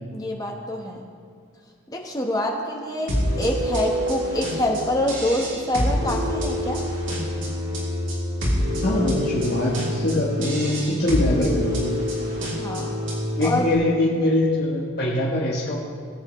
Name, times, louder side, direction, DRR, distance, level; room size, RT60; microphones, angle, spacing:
voice 1, 0.1-1.0 1.9-6.8 12.6-13.0 13.4-13.7, left 1 dB, 20° left, 0 dB, 1.1 m, -26 dB
sound 1, 3.1-13.7, equal, 70° right, 3.1 m, -26 dB
voice 2, 8.8-12.0 13.4-15.8, left 1 dB, 50° left, -6 dB, 1.3 m, -23 dB
20.0 x 8.4 x 3.2 m, 2.2 s
head